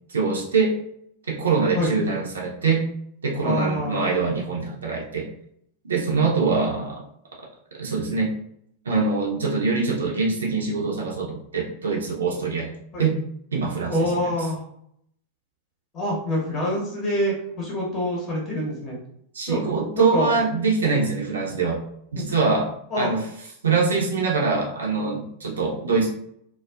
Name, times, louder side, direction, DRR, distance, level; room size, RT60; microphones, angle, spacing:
voice 1, 0.1-0.8 1.3-2.8 3.2-5.3 5.8-7.0 7.8-8.4 8.9-12.7 13.0-13.2 13.5-14.3 19.3-21.8 22.1-23.3 23.6-26.1, right 4 dB, 70° right, -2 dB, 0.5 m, -24 dB
voice 2, 3.4-4.1 12.9-13.1 13.9-14.6 15.9-19.0 19.5-19.6 19.9-20.3 22.9-23.1, equal, 30° left, -3 dB, 0.8 m, -25 dB
2.3 x 2.3 x 2.3 m, 0.70 s
figure-of-eight pair, 90°, 0 cm